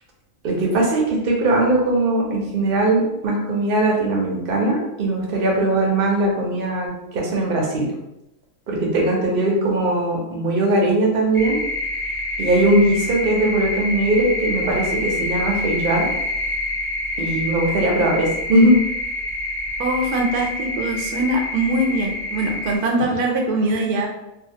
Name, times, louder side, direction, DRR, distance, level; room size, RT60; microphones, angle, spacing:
voice 1, 0.4-7.9 8.7-11.6 12.4-16.1 17.2-18.8, right 1 dB, 50° right, -2 dB, 0.7 m, -20 dB
sound 1, 11.3-22.8, left 1 dB, 30° left, 1.0 m, -27 dB
voice 2, 19.8-24.1, right 1 dB, 85° right, 0 dB, 1.1 m, -22 dB
2.7 x 2.4 x 2.7 m, 0.89 s
omnidirectional pair, 1.6 m